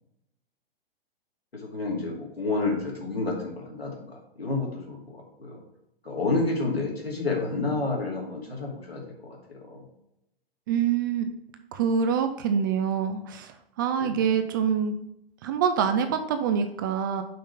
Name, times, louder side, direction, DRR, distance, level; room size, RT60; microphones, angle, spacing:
voice 1, 1.5-5.6 6.0-9.8 14.0-14.3, left 3 dB, 80° left, -2 dB, 2.4 m, -30 dB
voice 2, 10.7-11.3 11.7-13.5 13.8-14.9 15.4-17.2, right 7 dB, 20° right, 7 dB, 0.3 m, -25 dB
5.8 x 5.1 x 5.1 m, 0.82 s
figure-of-eight pair, 110°, 30 cm